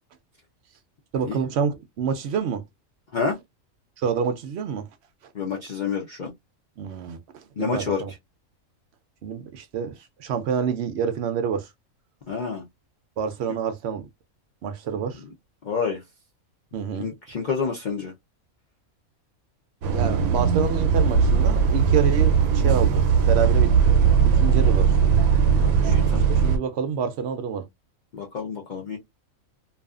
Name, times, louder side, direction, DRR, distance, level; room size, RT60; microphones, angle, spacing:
voice 1, 1.1-2.6 4.0-4.9 6.8-7.2 7.6-8.1 9.2-11.7 13.2-14.1 14.6-15.2 16.7-17.1 19.9-24.9 25.8-25.9 26.3-27.7, right 7 dB, 65° right, 0.7 m, -28 dB
voice 2, 5.3-6.3 7.6-8.0 12.3-12.6 15.6-16.0 17.0-18.1 25.5-26.3 28.1-29.0, left 5 dB, 55° left, 0.5 m, -28 dB
Bus, 19.8-26.6, right 6 dB, 90° right, 1.1 m, -19 dB
2.6 x 2.4 x 2.3 m
omnidirectional pair, 1.5 m